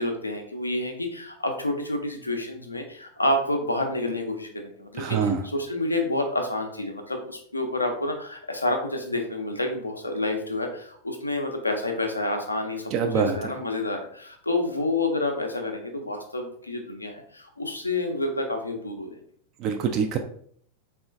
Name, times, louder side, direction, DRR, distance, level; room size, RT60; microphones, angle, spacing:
voice 1, 0.0-5.2 5.5-19.2, left 2 dB, 80° left, 4 dB, 0.5 m, -29 dB
voice 2, 5.0-5.5 12.9-13.5 19.6-20.2, right 6 dB, 40° right, 6 dB, 0.3 m, -25 dB
3.6 x 2.4 x 2.4 m, 0.62 s
figure-of-eight pair, 90°, 0 cm